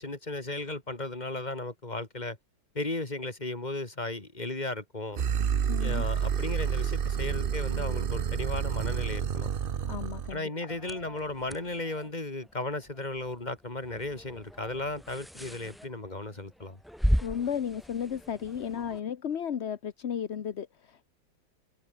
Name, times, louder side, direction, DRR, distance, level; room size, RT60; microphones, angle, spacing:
voice 1, 0.0-2.4 2.7-5.2 5.8-9.5 10.3-16.8, left 2 dB, 20° left, 3.2 m, -35 dB
sound 1, 5.2-10.4, right 8 dB, 65° right, 0.5 m, -29 dB
voice 2, 5.7-6.0 9.9-10.5 17.2-21.1, left 8 dB, 45° left, 0.9 m, -34 dB
sound 2, 10.7-19.0, equal, ahead, 2.8 m, -36 dB
omnidirectional pair, 2.1 m